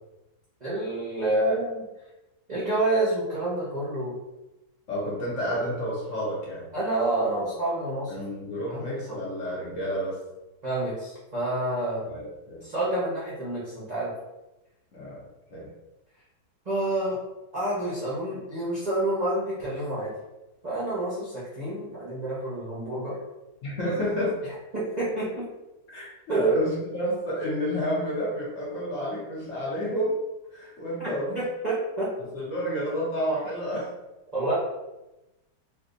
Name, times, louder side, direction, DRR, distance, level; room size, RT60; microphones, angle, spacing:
voice 1, 0.6-1.8 2.5-4.2 6.7-8.2 8.7-9.2 10.6-12.1 12.6-14.1 16.6-17.2 17.5-20.1 20.6-23.2 24.7-25.4 26.3-26.6 31.3-32.1 34.3-34.6, right 2 dB, 40° right, -9 dB, 0.6 m, -28 dB
voice 2, 4.9-6.7 8.1-10.2 12.0-12.6 14.9-15.2 15.5-15.7 23.6-24.4 25.9-30.2 30.5-31.4 32.3-33.9, equal, 55° left, -6 dB, 1.1 m, -30 dB
3.3 x 2.7 x 2.5 m, 1.0 s
omnidirectional pair, 1.9 m